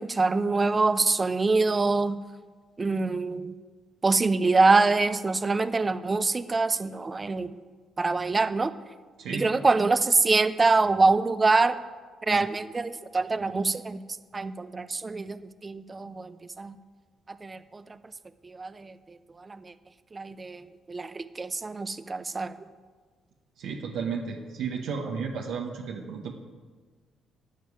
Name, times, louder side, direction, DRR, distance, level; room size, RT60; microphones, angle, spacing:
voice 1, 0.0-2.2 2.8-3.6 4.0-7.5 8.0-8.7 9.3-11.8 12.3-14.0 14.3-16.8 17.3-17.8 18.4-18.9 19.5-19.7 20.1-22.5, right 3 dB, 25° right, 13 dB, 0.7 m, -25 dB
voice 2, 9.2-9.5 23.6-26.3, right 5 dB, 80° right, 0 dB, 1.4 m, -33 dB
12.0 x 9.4 x 8.4 m, 1.4 s
cardioid pair, 90°, 0 cm